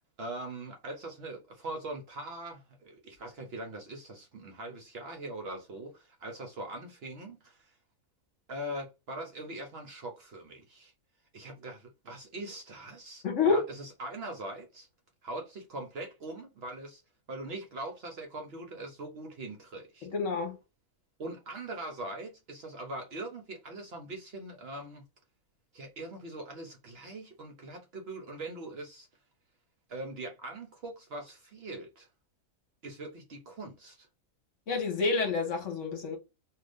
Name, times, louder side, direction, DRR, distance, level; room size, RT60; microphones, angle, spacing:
voice 1, 0.2-7.7 8.5-10.9 11.3-14.9 15.2-17.0 17.3-20.1 21.2-25.0 25.7-29.1 29.9-32.1 32.8-34.1, right 2 dB, 55° right, 0.8 m, -42 dB
voice 2, 13.2-13.7 20.0-20.6 34.7-36.2, left 4 dB, 65° left, 1.2 m, -28 dB
2.5 x 2.5 x 3.3 m
omnidirectional pair, 1.4 m